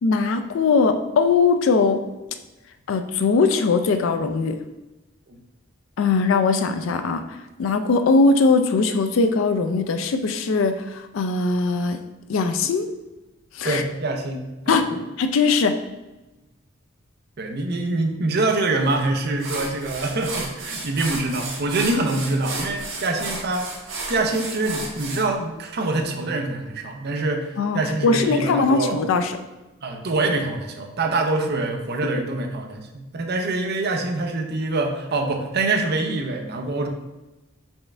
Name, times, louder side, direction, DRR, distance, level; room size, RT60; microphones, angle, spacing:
voice 1, 0.0-2.0 2.9-4.6 6.0-7.2 7.6-12.0 12.3-12.9 13.5-13.8 14.7-14.9 15.2-15.8 27.6-29.3, left 4 dB, 70° left, 7 dB, 0.4 m, -20 dB
voice 2, 13.6-15.0 17.4-23.7 24.1-29.0 29.8-36.9, right 2 dB, 55° right, 3 dB, 0.6 m, -25 dB
sound 1, 18.9-19.0 19.4-25.2, right 3 dB, 75° right, 1.2 m, -32 dB
4.4 x 3.4 x 3.3 m, 1.0 s
head